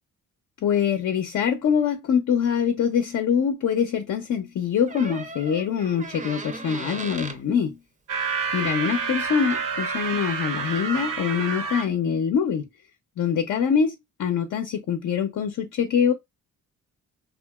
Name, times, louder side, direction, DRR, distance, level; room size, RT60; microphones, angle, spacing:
voice 1, 0.6-7.8 8.5-12.7 13.2-16.1, left 7 dB, 55° left, 0.6 m, -24 dB
Door, 4.9-7.4 9.2-9.3 9.5-9.9, right 3 dB, 25° right, 0.6 m, -37 dB
sound 1, 8.1-11.9, right 5 dB, 75° right, 0.9 m, -28 dB
2.8 x 2.5 x 2.2 m
supercardioid pair, 65°, 33 cm